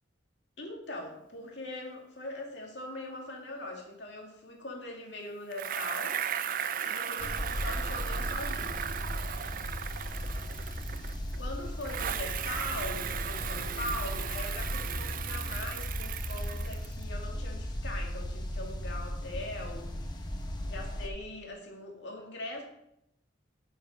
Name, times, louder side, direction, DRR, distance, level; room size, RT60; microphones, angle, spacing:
voice 1, 0.6-6.2 6.8-9.2 11.1-20.1 20.7-22.6, left 1 dB, 65° left, 0 dB, 2.3 m, -41 dB
Bicycle, 5.5-11.4 11.8-17.0, right 8 dB, 45° right, 0.4 m, -36 dB
sound 1, 7.2-21.1, equal, 20° left, 0.9 m, -36 dB
9.2 x 5.8 x 5.4 m, 0.79 s
head